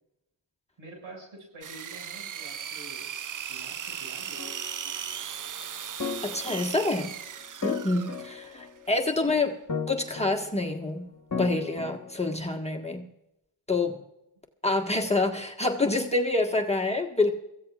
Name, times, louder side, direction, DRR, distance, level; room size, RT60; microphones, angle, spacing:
voice 1, 0.8-3.0 3.5-4.5 7.6-7.8, right 2 dB, 80° right, 0 dB, 6.5 m, -47 dB
sound 1, 1.6-8.6, right 8 dB, 40° right, 0.6 m, -37 dB
sound 2, 4.4-4.9 6.0-7.1 7.6-9.0 9.7-10.8 11.3-12.4, left 5 dB, 35° left, 1.6 m, -36 dB
voice 2, 6.2-7.1 7.6-9.5 9.9-11.1 11.4-13.1 13.7-13.9 14.6-17.3, left 2 dB, 15° left, 1 dB, 1.6 m, -27 dB
22.5 x 15.0 x 2.5 m, 0.87 s
supercardioid pair, 45°, 50 cm